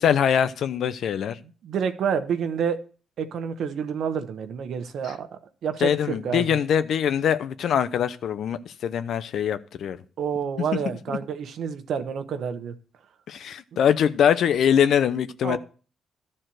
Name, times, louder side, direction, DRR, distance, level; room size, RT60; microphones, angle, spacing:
voice 1, 0.0-1.4 5.8-10.0 13.3-15.6, left 8 dB, 70° left, 0.7 m, -23 dB
voice 2, 1.6-2.8 3.2-6.6 10.2-12.7 13.7-13.8 15.4-15.6, right 7 dB, 70° right, 1.1 m, -29 dB
12.5 x 4.3 x 7.7 m
cardioid pair, 90°, 0 cm